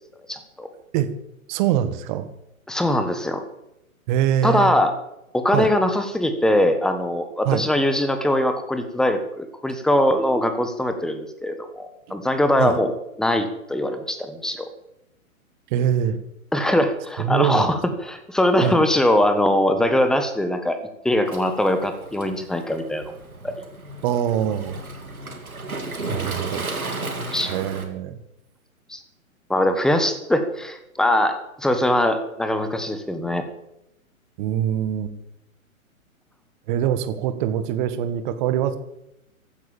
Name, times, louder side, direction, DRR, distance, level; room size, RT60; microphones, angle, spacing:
voice 1, 0.3-0.7 2.7-3.4 4.4-4.9 5.3-12.9 13.2-14.7 16.5-17.7 18.0-20.8 21.0-23.1 23.4-23.6 27.3-27.5 28.9-29.0 29.5-33.5, left 1 dB, ahead, 8 dB, 1.4 m, -22 dB
voice 2, 1.5-2.3 4.1-4.8 5.5-5.7 7.5-7.6 12.6-12.8 15.7-16.2 17.2-17.7 18.6-18.8 24.0-24.8 26.1-26.7 27.4-28.2 34.4-35.1 36.7-38.8, right 10 dB, 35° right, 11 dB, 1.8 m, -23 dB
Waves surf, 21.3-27.9, right 2 dB, 85° right, 3.4 m, -34 dB
16.0 x 12.0 x 7.1 m, 0.84 s
figure-of-eight pair, 125°, 42 cm